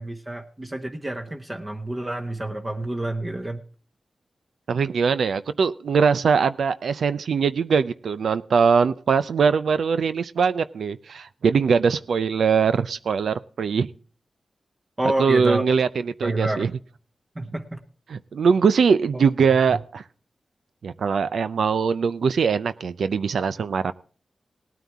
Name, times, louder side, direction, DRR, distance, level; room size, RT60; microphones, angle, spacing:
voice 1, 0.0-3.6 15.0-15.6 16.2-16.7 17.3-17.8, right 1 dB, 25° right, 3 dB, 1.2 m, -28 dB
voice 2, 4.7-13.9 15.2-16.7 18.1-20.0 20.8-23.9, right 6 dB, 85° right, 13 dB, 0.5 m, -21 dB
18.5 x 9.2 x 3.6 m, 0.41 s
cardioid pair, 75°, 0 cm